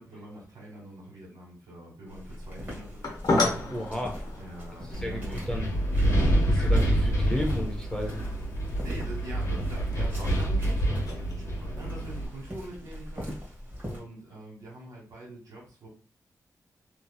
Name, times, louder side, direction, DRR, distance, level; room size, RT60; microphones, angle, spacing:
voice 1, 0.0-3.6 4.4-5.8 8.8-15.9, right 1 dB, 75° right, -3 dB, 1.4 m, -44 dB
sound 1, 2.1-14.0, equal, 25° right, 1.2 m, -43 dB
sound 2, 2.4-11.3, left 2 dB, 75° left, 0.7 m, -35 dB
voice 2, 3.7-4.2 5.0-5.8 6.4-8.2, left 1 dB, 10° left, 1 dB, 0.6 m, -33 dB
Wind, 4.9-12.3, right 1 dB, 45° left, 1.1 m, -27 dB
2.7 x 2.7 x 2.3 m, 0.38 s
wide cardioid pair, 145°, 6 cm